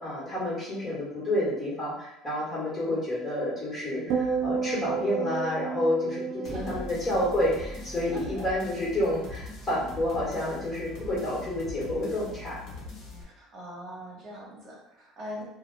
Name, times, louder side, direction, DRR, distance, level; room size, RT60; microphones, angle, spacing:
voice 1, 0.0-6.2 6.5-12.6, left 1 dB, 25° left, -7 dB, 1.4 m, -29 dB
sound 1, 4.1-8.5 8.8-9.2, right 5 dB, 70° right, 0.3 m, -32 dB
sound 2, 6.4-13.2, left 2 dB, 60° left, 1.1 m, -42 dB
voice 2, 6.4-6.8 8.1-8.4 13.2-15.4, equal, 45° right, -4 dB, 1.0 m, -41 dB
2.7 x 2.3 x 3.3 m, 0.83 s
cardioid pair, 130°, 0 cm